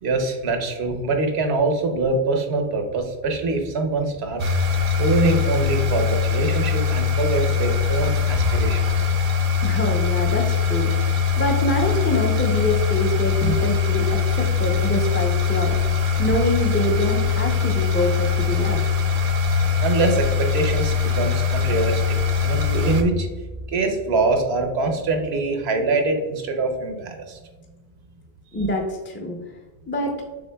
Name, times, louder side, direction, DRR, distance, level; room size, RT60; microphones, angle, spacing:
voice 1, 0.0-4.5 5.0-9.1 13.4-13.5 19.4-22.0 22.4-23.3 23.7-27.4, right 3 dB, 90° right, 4 dB, 1.0 m, -24 dB
sound 1, 4.4-23.0, left 6 dB, 60° right, 0.7 m, -22 dB
voice 2, 9.6-15.8 16.2-18.8 28.5-29.4 29.9-30.2, left 1 dB, 15° left, 0 dB, 0.4 m, -25 dB
6.2 x 3.5 x 2.2 m, 1.2 s
omnidirectional pair, 1.0 m